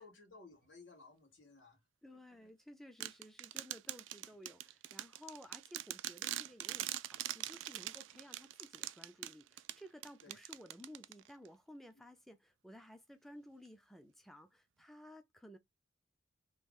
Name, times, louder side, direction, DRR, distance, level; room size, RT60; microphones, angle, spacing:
voice 1, 0.0-1.8 2.1-2.5 10.2-10.4, left 3 dB, 80° left, 1.6 m, -58 dB
voice 2, 2.0-15.6, equal, ahead, 0.4 m, -56 dB
sound 1, 3.0-11.5, right 14 dB, 80° right, 0.3 m, -43 dB
3.1 x 2.4 x 3.6 m
head